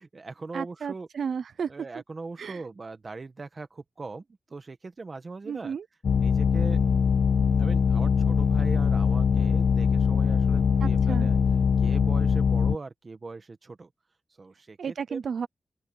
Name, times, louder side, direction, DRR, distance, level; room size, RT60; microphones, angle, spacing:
voice 1, 0.0-1.1 1.7-5.8 6.1-6.8 7.6-11.4 11.8-13.9 14.4-15.2, right 3 dB, 35° right, 1.4 m, -40 dB
voice 2, 0.5-1.7 2.4-2.6 5.5-5.8 10.8-11.3 14.8-15.5, right 6 dB, 85° right, 0.6 m, -33 dB
sound 1, 6.0-12.8, left 6 dB, 65° left, 0.3 m, -22 dB
open air
wide cardioid pair, 165°, 0 cm